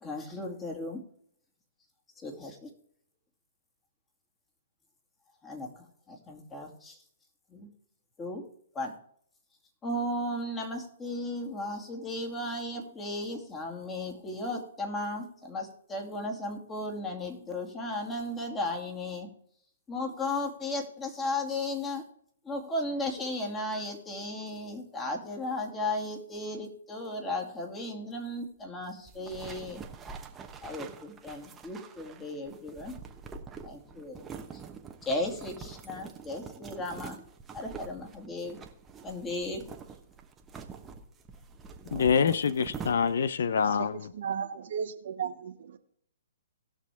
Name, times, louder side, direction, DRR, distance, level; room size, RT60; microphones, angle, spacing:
voice 1, 0.0-1.0 2.2-2.7 5.4-7.0 7.5-7.7 8.2-8.4 8.7-8.9 9.8-19.3 19.9-22.0 22.4-29.8 30.6-32.9 33.6-34.6 35.0-37.2 37.5-38.6 39.0-39.6, left 1 dB, 15° left, 2.4 m, -35 dB
sound 1, 29.1-43.4, right 5 dB, 15° right, 1.1 m, -45 dB
voice 2, 41.9-44.1, left 6 dB, 70° left, 0.6 m, -26 dB
voice 3, 44.2-45.8, right 7 dB, 60° right, 1.2 m, -35 dB
18.5 x 6.2 x 3.5 m
hypercardioid pair, 135°, 0 cm